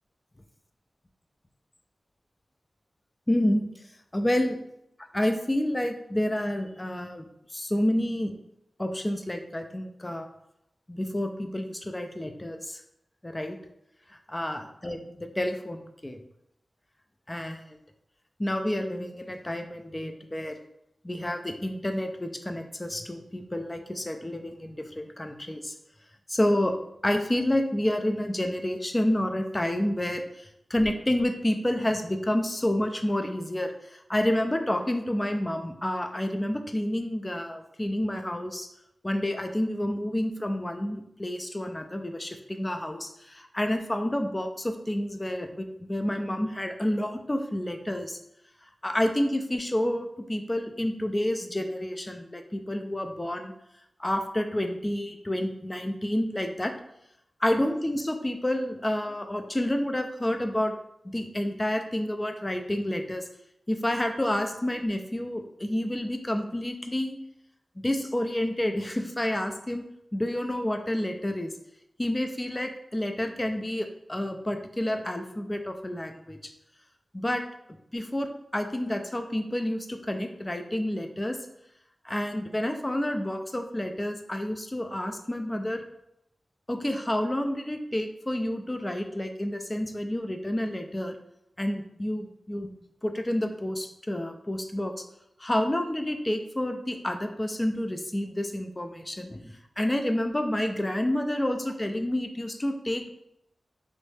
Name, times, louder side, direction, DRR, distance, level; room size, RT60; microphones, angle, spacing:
voice 1, 3.3-3.6 4.1-4.6 5.1-7.3 7.5-8.3 8.8-10.3 10.9-12.8 13.2-13.6 14.3-16.2 17.3-17.6 18.4-20.5 21.0-25.7 26.3-26.7 27.0-38.7 39.0-48.2 48.8-53.5 54.0-56.7 57.4-60.7 61.0-63.3 63.7-67.2 67.8-69.8 70.1-71.5 72.0-76.5 77.1-77.4 77.9-81.4 82.0-85.8 86.7-91.1 91.6-92.7 93.0-94.9 95.4-103.1, left 1 dB, 20° left, 5 dB, 0.4 m, -29 dB
3.1 x 2.7 x 3.3 m, 0.80 s
wide cardioid pair, 105°, 0 cm